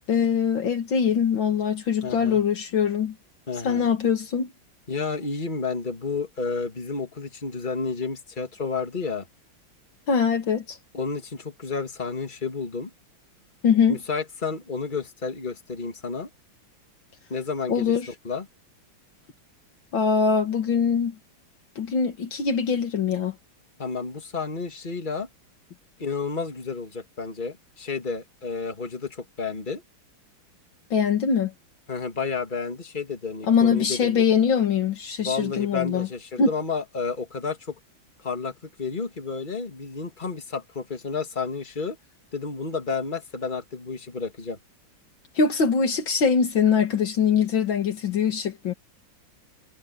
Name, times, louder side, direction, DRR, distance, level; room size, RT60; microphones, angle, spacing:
voice 1, 0.1-3.1 3.6-4.5 10.1-10.8 13.6-14.0 17.7-18.1 19.9-21.1 21.8-23.3 30.9-31.5 33.5-36.1 36.4-36.5 45.4-48.7, left 6 dB, 70° left, 2.5 m, -22 dB
voice 2, 2.0-2.4 3.5-3.9 4.9-9.3 10.9-12.9 13.9-16.3 17.3-17.9 18.2-18.5 23.8-25.3 26.0-29.8 31.9-34.2 35.2-37.8 38.2-42.0 42.3-44.6, left 4 dB, 25° left, 2.4 m, -31 dB
omnidirectional pair, 2.2 m